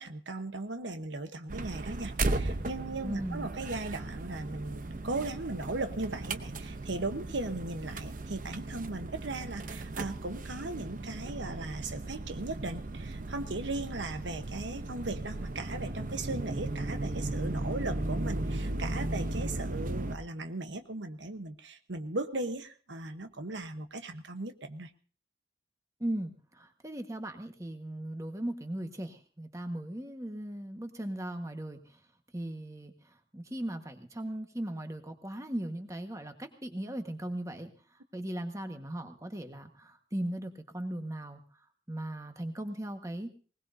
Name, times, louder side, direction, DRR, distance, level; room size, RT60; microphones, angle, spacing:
voice 1, 0.0-24.9, right 2 dB, 85° right, 8 dB, 1.1 m, -38 dB
sound 1, 1.5-20.2, right 2 dB, 45° right, 0.8 m, -36 dB
voice 2, 3.0-3.5 26.0-32.0 32.3-37.7 38.1-41.6 41.9-43.3, right 1 dB, 15° right, 6 dB, 1.5 m, -38 dB
20.0 x 20.0 x 2.7 m, 0.38 s
head